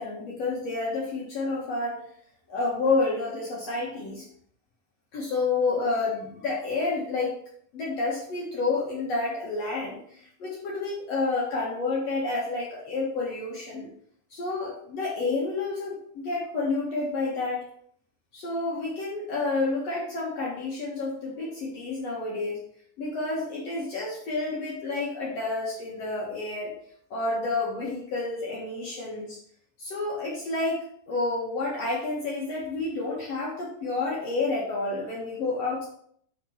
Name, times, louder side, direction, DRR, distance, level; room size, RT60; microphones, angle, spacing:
voice 1, 0.0-2.0 2.5-4.2 5.1-7.4 7.7-13.9 14.3-17.6 18.3-22.6 23.0-26.7 27.1-29.4 29.8-30.8 31.1-35.9, left 3 dB, 85° left, -4 dB, 1.4 m, -29 dB
7.1 x 5.3 x 5.7 m, 0.64 s
omnidirectional pair, 5.5 m